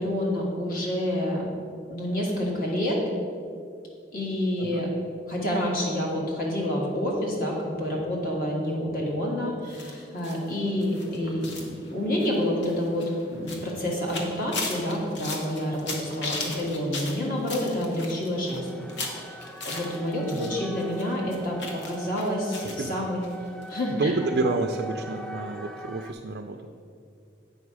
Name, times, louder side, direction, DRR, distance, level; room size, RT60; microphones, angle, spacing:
voice 1, 0.0-1.4 1.9-3.0 4.1-4.9 5.3-18.8 19.2-19.4 19.6-23.2 23.7-24.1, left 1 dB, 50° left, -3 dB, 1.6 m, -28 dB
sound 1, 9.7-20.5 20.8-22.9 23.2-23.3 23.6-23.7, left 3 dB, 75° left, 1.1 m, -37 dB
sound 2, 18.5-26.1, right 1 dB, 5° left, 0.3 m, -42 dB
voice 2, 20.2-20.6 22.8-23.0 23.9-26.6, right 3 dB, 65° right, 4 dB, 0.4 m, -29 dB
8.1 x 5.7 x 4.7 m, 2.4 s
head